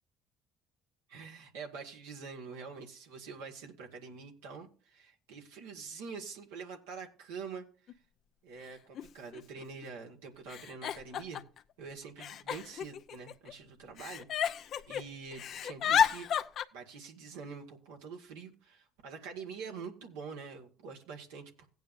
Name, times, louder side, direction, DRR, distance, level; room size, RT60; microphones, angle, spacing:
voice 1, 1.1-7.9 8.4-11.4 11.8-16.3 16.7-21.7, right 5 dB, 85° right, 0 dB, 1.8 m, -46 dB
Giggle, 7.9-8.0 9.0-9.1 9.3-9.8 10.5-11.6 12.2-13.5 14.0-15.0 15.3-16.6, left 9 dB, 60° left, 0.7 m, -32 dB
17.0 x 9.2 x 2.6 m, 0.37 s
hypercardioid pair, 65°, 0 cm